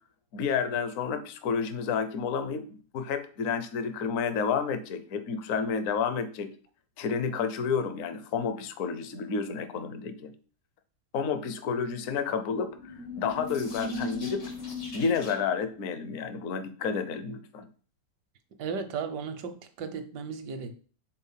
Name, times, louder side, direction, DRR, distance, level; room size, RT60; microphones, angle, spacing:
voice 1, 0.3-2.6 2.9-6.5 7.0-10.3 11.1-14.4 14.9-17.7, left 6 dB, 60° left, 9 dB, 1.0 m, -30 dB
sound 1, 12.4-15.6, left 2 dB, 80° left, 2.5 m, -37 dB
voice 2, 18.6-20.7, right 5 dB, 80° right, 8 dB, 1.4 m, -35 dB
5.4 x 3.8 x 5.7 m, 0.41 s
omnidirectional pair, 1.8 m